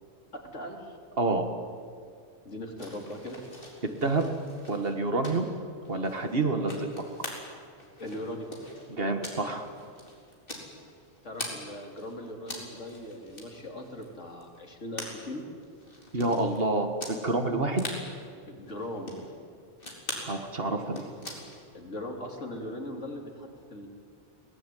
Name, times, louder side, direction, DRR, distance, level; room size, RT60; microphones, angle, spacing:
voice 1, 0.5-1.0 2.5-3.4 8.0-8.5 11.2-15.4 18.5-19.1 21.7-23.9, left 1 dB, 80° left, 1 dB, 3.6 m, -39 dB
voice 2, 1.2-1.5 4.0-4.2 4.7-5.5 5.9-6.9 8.9-9.7 16.1-17.8 20.2-21.0, right 2 dB, 55° right, 6 dB, 2.0 m, -28 dB
sound 1, 2.8-11.6 11.9-16.6 17.0-17.2 17.4-17.5 17.7-18.0 18.6-19.3 19.8-20.3 20.7-21.6, left 1 dB, 50° left, 4.3 m, -43 dB
22.5 x 18.5 x 9.3 m, 2.2 s
omnidirectional pair, 1.2 m